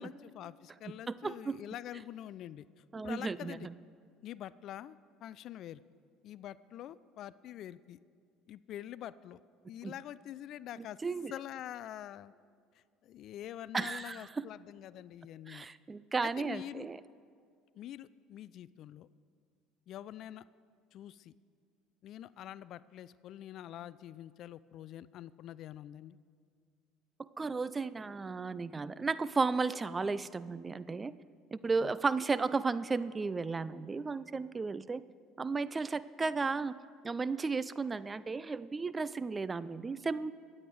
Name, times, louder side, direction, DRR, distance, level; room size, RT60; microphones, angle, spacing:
voice 1, 0.0-3.7 4.2-5.8 6.2-8.0 8.5-9.4 9.7-11.0 11.3-12.3 12.7-15.7 16.2-16.9 17.8-19.1 19.9-20.4 20.9-21.3 22.0-26.2 31.8-31.9, left 12 dB, 60° left, 18 dB, 0.4 m, -46 dB
voice 2, 1.1-1.5 2.9-3.7 9.8-9.9 11.0-11.3 13.7-14.3 15.5-17.0 27.4-31.1 31.5-35.0 35.4-36.7 37.0-40.3, right 4 dB, 25° right, 16 dB, 0.5 m, -34 dB
23.0 x 8.7 x 4.8 m, 2.2 s
hypercardioid pair, 75°, 0 cm